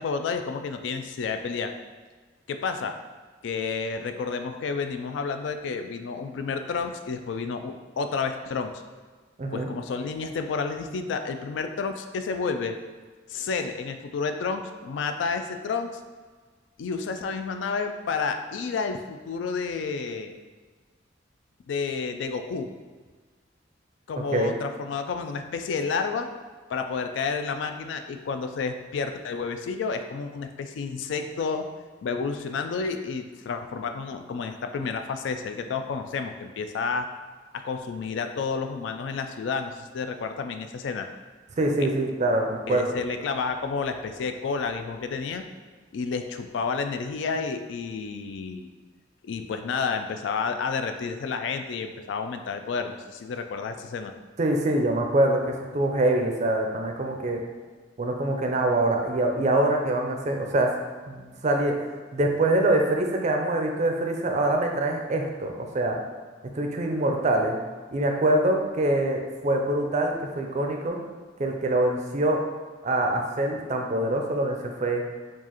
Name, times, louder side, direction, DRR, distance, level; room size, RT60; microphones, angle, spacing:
voice 1, 0.0-1.7 2.5-2.9 3.4-8.8 9.5-12.8 13.3-16.0 16.8-20.3 21.7-22.7 24.1-26.3 26.7-31.7 32.0-37.1 37.5-41.1 41.8-41.9 42.7-45.4 45.9-48.7 49.2-54.1, left 5 dB, 70° left, 7 dB, 0.3 m, -30 dB
voice 2, 41.6-43.0 54.4-57.4 58.0-60.8 61.1-61.7 62.1-66.0 66.5-67.6 67.9-71.0 71.4-72.4 72.8-75.0, right 1 dB, 40° right, 2 dB, 0.4 m, -24 dB
4.6 x 2.4 x 2.9 m, 1.4 s
head